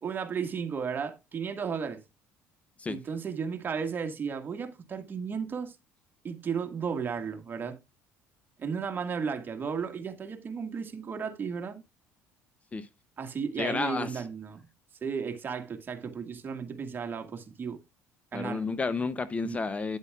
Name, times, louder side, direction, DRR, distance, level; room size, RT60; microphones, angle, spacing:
voice 1, 0.0-2.0 2.9-5.8 6.2-7.8 8.6-11.8 13.2-14.6 15.0-17.8 18.3-18.6 19.4-19.6, right 6 dB, 30° right, 1.7 m, -34 dB
voice 2, 13.6-14.2 18.3-20.0, left 4 dB, 20° left, 0.6 m, -31 dB
9.6 x 8.2 x 2.3 m
supercardioid pair, 105°, 6 cm